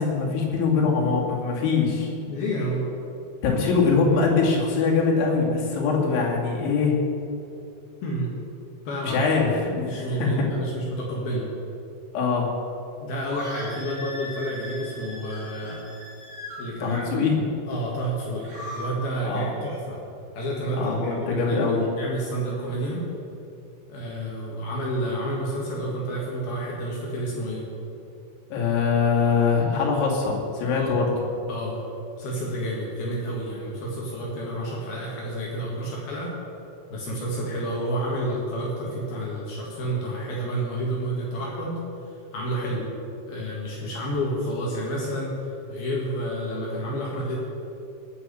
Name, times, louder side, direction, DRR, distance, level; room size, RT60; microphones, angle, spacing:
voice 1, 0.0-2.1 3.4-7.0 9.0-10.5 12.1-12.5 16.8-17.4 19.2-19.5 20.8-21.9 28.5-31.1, left 5 dB, 80° left, -2 dB, 4.7 m, -23 dB
voice 2, 2.3-2.8 8.0-8.3 8.8-9.2 9.8-11.5 13.0-15.8 16.6-17.0 17.7-20.0 20.3-23.1 23.9-27.6 30.8-31.0 31.5-31.8 32.2-36.3 36.9-41.8 42.3-42.9 43.3-47.4, right 1 dB, 60° left, -4 dB, 3.5 m, -30 dB
sound 1, 13.2-16.6 18.3-18.9, left 1 dB, 25° right, 3.6 m, -38 dB
18.5 x 6.2 x 7.6 m, 2.7 s
omnidirectional pair, 5.3 m